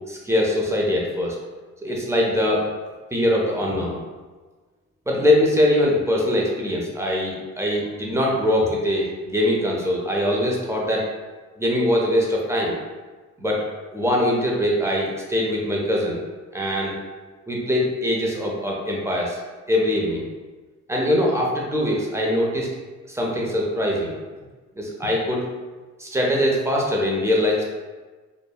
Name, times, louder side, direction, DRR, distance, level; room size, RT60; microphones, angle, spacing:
voice 1, 0.1-1.3 1.8-2.7 3.1-4.0 5.1-11.1 11.6-12.8 13.4-13.7 13.9-16.2 16.5-16.9 17.5-19.4 19.7-20.2 20.9-22.7 23.1-24.1 24.8-25.5 26.0-27.6, left 1 dB, 10° right, -2 dB, 0.5 m, -22 dB
2.7 x 2.1 x 2.2 m, 1.3 s
cardioid pair, 90°, 30 cm